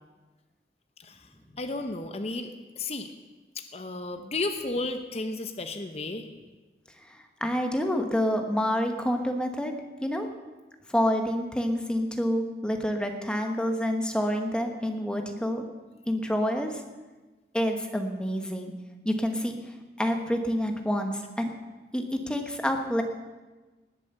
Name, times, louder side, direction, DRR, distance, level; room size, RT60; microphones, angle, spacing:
voice 1, 1.5-3.1 3.5-6.3, left 2 dB, 35° left, 6 dB, 0.8 m, -33 dB
voice 2, 7.4-10.3 10.9-15.7 16.1-16.8 17.5-18.7 19.0-19.5 20.0-21.5 21.9-23.0, equal, 5° left, 4 dB, 1.2 m, -28 dB
19.5 x 7.3 x 6.8 m, 1.2 s
head